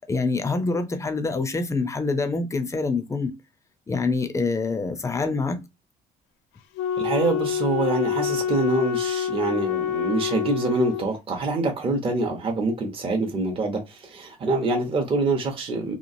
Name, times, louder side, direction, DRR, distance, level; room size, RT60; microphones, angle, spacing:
voice 1, 0.1-3.3 3.9-5.6, left 3 dB, 15° left, 0.5 m, -25 dB
Wind instrument woodwind instrument, 6.8-11.1, left 8 dB, 90° left, 0.4 m, -26 dB
voice 2, 7.0-16.0, right 3 dB, 30° right, 0.8 m, -25 dB
3.0 x 2.3 x 2.6 m
cardioid pair, 110°, 17 cm